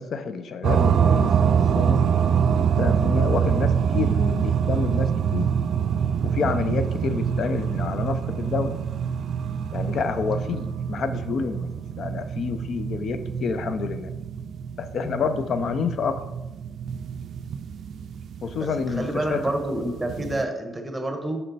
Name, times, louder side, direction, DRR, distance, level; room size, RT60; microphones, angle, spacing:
voice 1, 0.0-2.0 2.6-5.5 6.2-8.7 9.7-11.7 12.0-14.1 14.8-16.2 18.4-19.5, left 5 dB, 60° left, 10 dB, 0.5 m, -28 dB
sound 1, 0.6-20.4, right 7 dB, 65° right, 0.3 m, -25 dB
voice 2, 18.6-21.4, right 1 dB, 10° right, 4 dB, 1.0 m, -29 dB
5.6 x 4.3 x 4.0 m, 1.0 s
cardioid pair, 90°, 0 cm